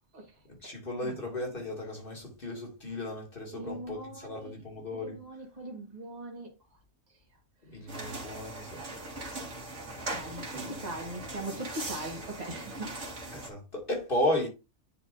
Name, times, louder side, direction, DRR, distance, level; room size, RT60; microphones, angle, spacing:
voice 1, 0.5-5.2 7.6-8.8 9.9-10.9 13.3-14.5, left 1 dB, 50° left, 2.6 m, -35 dB
voice 2, 3.5-4.6 4.9-6.5 10.1-12.9, right 1 dB, 35° right, 1.8 m, -40 dB
sound 1, 7.9-13.5, right 2 dB, 70° right, 1.9 m, -40 dB
10.0 x 4.8 x 2.6 m
omnidirectional pair, 1.2 m